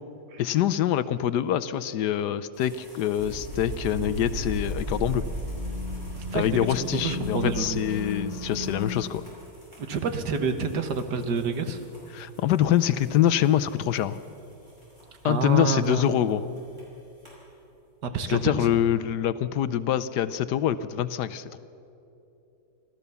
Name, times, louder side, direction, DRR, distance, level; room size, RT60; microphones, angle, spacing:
voice 1, 0.4-5.2 6.3-9.2 12.1-14.2 15.2-16.5 18.3-21.6, left 11 dB, 75° left, 14 dB, 1.2 m, -25 dB
sound 1, 2.5-18.0, equal, 40° right, 6.2 m, -54 dB
sound 2, 3.2-8.9, left 1 dB, 25° right, 6.1 m, -33 dB
voice 2, 6.3-6.7 6.9-7.8 9.8-11.8 15.2-16.2 18.0-18.5, right 4 dB, 70° right, 8 dB, 1.8 m, -28 dB
25.5 x 15.0 x 6.9 m, 2.8 s
omnidirectional pair, 1.9 m